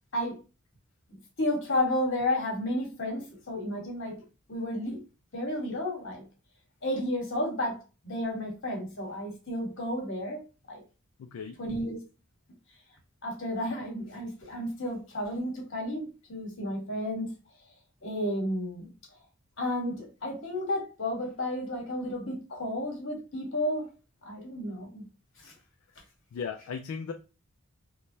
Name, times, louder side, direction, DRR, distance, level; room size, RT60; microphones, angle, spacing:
voice 1, 1.4-4.2 4.5-5.0 5.3-6.2 6.8-7.8 8.0-10.4 10.7-10.8 11.6-12.0 13.2-17.3 18.0-18.9 19.6-23.9 24.2-25.0 25.4-25.5, left 1 dB, 55° left, 1.1 m, -32 dB
voice 2, 11.2-11.5 26.3-27.1, left 6 dB, 75° left, 0.3 m, -36 dB
3.1 x 2.2 x 2.5 m
head